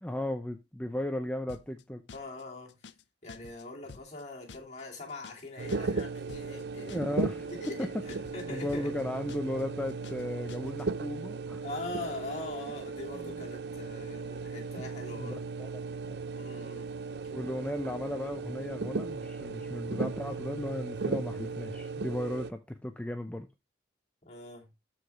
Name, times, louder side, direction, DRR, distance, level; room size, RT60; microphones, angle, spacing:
voice 1, 0.0-2.0 6.8-7.5 7.8-7.9 8.5-11.6 13.1-13.4 14.8-14.9 15.2-15.7 16.0-16.2 17.3-23.5, left 1 dB, 5° left, 0.5 m, -36 dB
sound 1, 1.5-1.8 2.1-2.4 2.7-3.0 3.3-3.6 3.9-4.2 4.5-4.8 5.1-5.4 5.7-6.0 6.3-6.6 6.9-7.2 7.5-8.4 8.7-9.0 9.3-9.6 9.9-10.2 10.5-10.8, left 5 dB, 70° left, 0.5 m, -50 dB
voice 2, 2.1-2.8 3.2-8.9 11.6-15.4 16.3-16.9 24.2-24.7, left 2 dB, 35° left, 2.6 m, -42 dB
sound 2, 5.6-22.5, right 4 dB, 60° right, 0.5 m, -36 dB
12.5 x 4.9 x 3.3 m
head